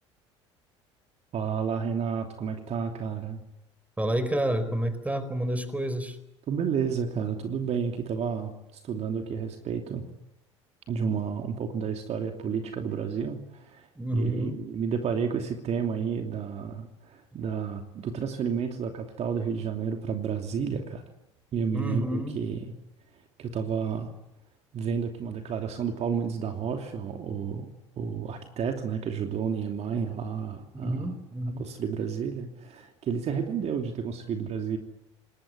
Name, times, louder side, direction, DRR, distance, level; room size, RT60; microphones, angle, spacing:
voice 1, 1.3-3.4 6.5-10.1 10.9-13.9 14.1-21.0 21.5-22.6 23.4-24.1 24.7-27.7 28.0-31.1 31.6-34.8, right 6 dB, 45° right, 5 dB, 2.9 m, -31 dB
voice 2, 4.0-6.2 14.0-14.6 21.7-22.4 30.7-31.7, right 1 dB, 10° right, 12 dB, 4.4 m, -29 dB
27.5 x 20.0 x 9.7 m, 0.91 s
figure-of-eight pair, 65°, 16 cm